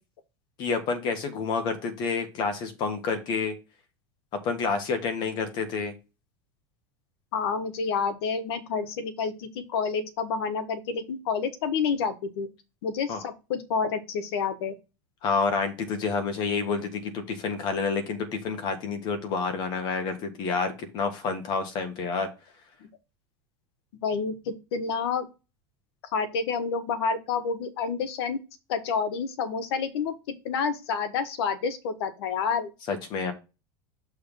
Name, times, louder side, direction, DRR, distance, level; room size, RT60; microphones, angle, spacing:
voice 1, 0.6-3.5 4.4-5.9 13.1-13.2 15.2-22.3 32.9-33.3, left 5 dB, 35° left, 7 dB, 1.4 m, -29 dB
voice 2, 7.3-12.5 12.8-14.8 24.0-25.3 26.1-28.4 28.7-30.1 30.4-32.7, left 5 dB, 75° left, 10 dB, 1.3 m, -29 dB
6.8 x 3.5 x 5.4 m, 0.29 s
supercardioid pair, 180°, 14 cm